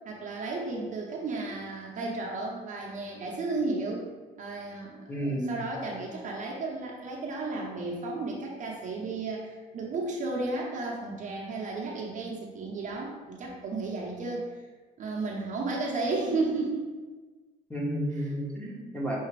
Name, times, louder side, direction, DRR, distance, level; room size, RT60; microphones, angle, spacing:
voice 1, 0.0-4.0 4.4-14.5 15.0-17.0 18.1-18.4, right 3 dB, 50° right, -1 dB, 0.8 m, -33 dB
voice 2, 5.1-5.6 17.7-19.2, equal, 10° left, -4 dB, 1.1 m, -31 dB
5.7 x 2.8 x 3.3 m, 1.3 s
cardioid pair, 110°, 17 cm